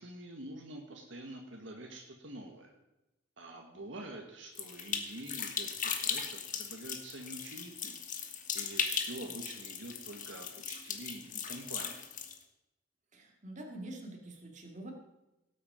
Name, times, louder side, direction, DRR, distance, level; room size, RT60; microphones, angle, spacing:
voice 1, 0.0-2.7 3.4-8.0 8.5-12.0, right 1 dB, 70° right, 1 dB, 1.6 m, -46 dB
sound 1, 4.5-12.4, left 7 dB, 45° left, 1.4 m, -38 dB
voice 2, 13.1-14.9, right 1 dB, 40° right, 1 dB, 2.4 m, -46 dB
18.0 x 8.5 x 5.1 m, 0.95 s
head